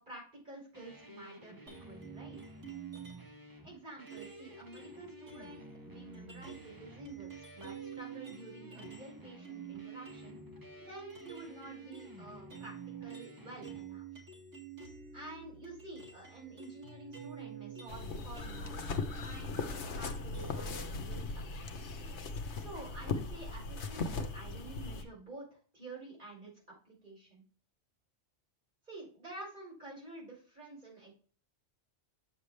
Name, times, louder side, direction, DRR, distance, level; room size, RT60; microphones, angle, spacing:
voice 1, 0.0-2.4 3.6-10.4 10.9-14.2 15.1-21.7 22.5-27.4 28.9-31.1, right 2 dB, 40° right, -4 dB, 5.0 m, -50 dB
sound 1, 0.7-13.8, equal, 20° right, 1.2 m, -53 dB
sound 2, 1.7-3.4 4.1-9.1 9.4-20.9, right 6 dB, 80° right, 2.7 m, -49 dB
sound 3, 17.9-25.0, left 4 dB, 70° left, 1.3 m, -38 dB
8.9 x 7.0 x 3.3 m, 0.41 s
omnidirectional pair, 1.2 m